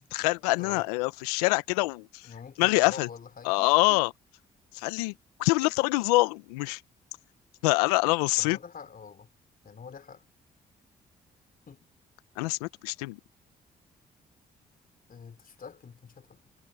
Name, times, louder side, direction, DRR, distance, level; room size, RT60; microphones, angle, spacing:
voice 1, 0.0-2.3 2.6-3.1 3.4-4.1 4.7-5.1 5.4-6.8 7.6-8.6 12.4-13.2, left 23 dB, 85° left, 1.1 m, -25 dB
voice 2, 0.6-0.9 2.2-4.0 8.4-9.3 9.6-10.3 11.7-11.9 15.1-16.4, left 6 dB, 50° left, 4.0 m, -46 dB
hypercardioid pair, 45°, 19 cm